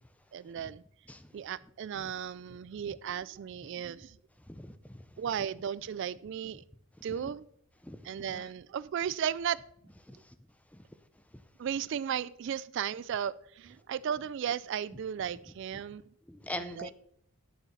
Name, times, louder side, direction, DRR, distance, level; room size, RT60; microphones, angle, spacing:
voice 1, 0.3-0.8 1.3-4.2 5.2-6.6 7.0-7.4 8.0-9.6 11.6-16.0 16.6-16.9, right 8 dB, 55° right, 19 dB, 0.3 m, -35 dB
voice 2, 4.5-5.0 7.2-7.3 7.8-8.0 8.3-8.4 10.1-10.2 16.3-16.9, left 1 dB, 5° left, 11 dB, 0.5 m, -41 dB
9.7 x 6.9 x 5.7 m, 0.67 s
head